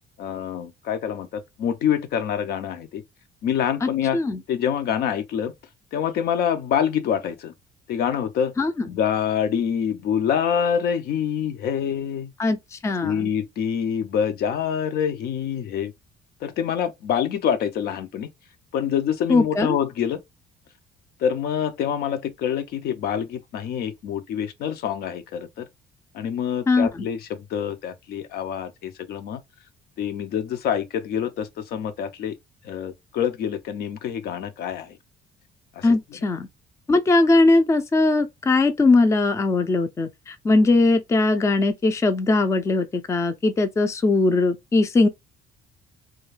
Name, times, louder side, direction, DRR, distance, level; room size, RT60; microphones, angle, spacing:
voice 1, 0.2-3.0 3.4-4.2 4.5-5.5 5.9-7.5 7.9-8.5 8.8-12.3 13.0-15.9 16.4-18.3 18.7-20.2 21.2-25.7 26.1-29.4 30.0-32.3 32.6-35.0 35.8-36.0, left 8 dB, 70° left, 0.5 m, -26 dB
voice 2, 3.8-4.4 8.6-8.7 12.4-13.3 19.3-19.8 26.7-27.1 35.8-36.5 36.9-45.1, left 3 dB, 15° left, 0.4 m, -20 dB
2.2 x 2.2 x 3.1 m
cardioid pair, 110°, 17 cm